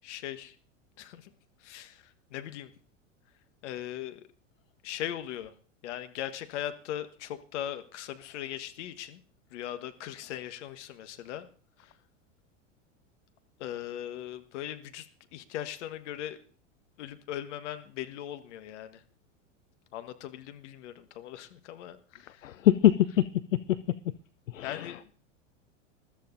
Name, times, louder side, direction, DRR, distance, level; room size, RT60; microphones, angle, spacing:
voice 1, 0.0-0.5 1.0-1.3 1.6-2.7 3.6-4.2 4.8-5.5 5.8-9.2 9.5-11.5 11.8-11.9 13.6-16.4 17.0-19.0 19.9-22.5 24.6-25.1, left 11 dB, 65° left, 10 dB, 1.5 m, -39 dB
voice 2, 22.4-24.1 24.5-25.1, left 12 dB, 85° left, 14 dB, 0.5 m, -25 dB
21.0 x 13.0 x 2.6 m, 0.40 s
hypercardioid pair, 95°, 38 cm